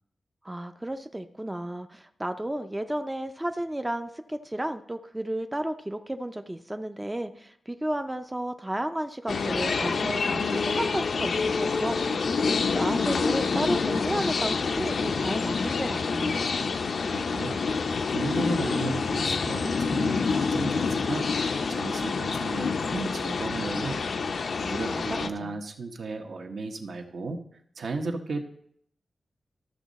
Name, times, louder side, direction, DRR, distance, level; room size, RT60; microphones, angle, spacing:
voice 1, 0.4-16.4 24.6-25.6, right 1 dB, 10° right, 7 dB, 0.4 m, -33 dB
sound 1, 9.3-25.3, left 4 dB, 65° left, 0.5 m, -27 dB
voice 2, 17.1-17.6 18.1-21.3 21.7-24.0 24.7-27.4 27.8-28.4, right 3 dB, 70° right, 3 dB, 1.1 m, -34 dB
13.5 x 6.4 x 4.1 m, 0.68 s
wide cardioid pair, 150°, 0 cm